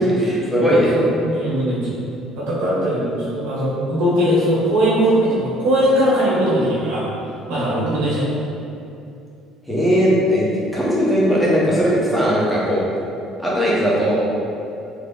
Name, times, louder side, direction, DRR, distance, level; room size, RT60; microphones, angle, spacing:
voice 1, 0.0-0.9 9.7-12.8 13.4-14.2, equal, ahead, -7 dB, 0.7 m, -18 dB
voice 2, 0.9-2.0 2.4-7.0 7.5-8.3, equal, 85° right, -7 dB, 1.1 m, -19 dB
3.3 x 2.0 x 3.6 m, 2.6 s
cardioid pair, 130°, 0 cm